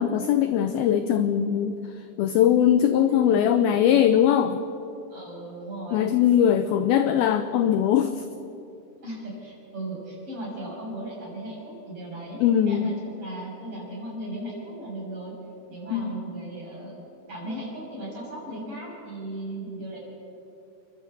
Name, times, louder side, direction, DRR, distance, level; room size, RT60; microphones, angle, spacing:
voice 1, 0.0-1.8 2.2-4.6 5.9-8.2 12.4-12.9 15.9-16.2, left 9 dB, 80° left, 9 dB, 2.2 m, -21 dB
voice 2, 2.1-2.6 3.3-3.5 5.1-6.1 9.0-15.3 15.7-17.0 17.3-20.0, right 1 dB, 30° right, -4 dB, 7.2 m, -37 dB
29.5 x 11.5 x 8.1 m, 2.8 s
omnidirectional pair, 5.1 m